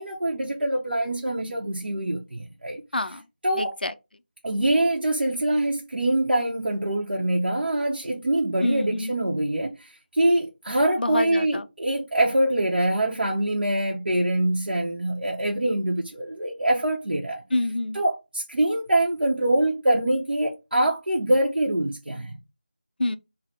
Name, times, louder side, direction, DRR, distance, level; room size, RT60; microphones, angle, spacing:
voice 1, 0.0-2.8 3.4-3.7 4.4-17.4 17.9-22.4, right 1 dB, 75° right, 0.7 m, -24 dB
voice 2, 2.9-3.2 3.6-3.9 8.6-9.1 11.0-11.7 17.5-18.0 23.0-23.2, left 2 dB, 60° left, 0.4 m, -27 dB
3.2 x 2.0 x 4.1 m
figure-of-eight pair, 175°, 6 cm